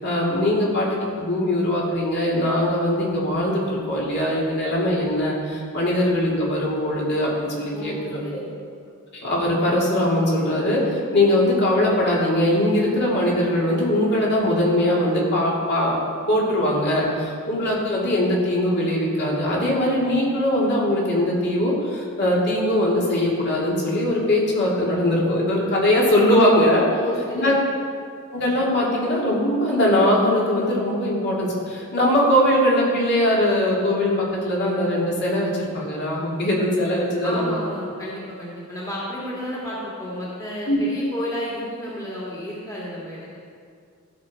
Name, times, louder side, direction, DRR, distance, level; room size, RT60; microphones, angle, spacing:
voice 1, 0.0-0.9 1.2-8.2 9.1-16.0 16.3-27.0 27.3-27.6 28.3-37.5 40.7-40.8, left 1 dB, 50° left, -5 dB, 2.5 m, -21 dB
voice 2, 7.7-8.4 27.0-27.5 37.2-43.4, equal, 15° left, -7 dB, 2.0 m, -32 dB
15.5 x 6.2 x 4.2 m, 2.3 s
head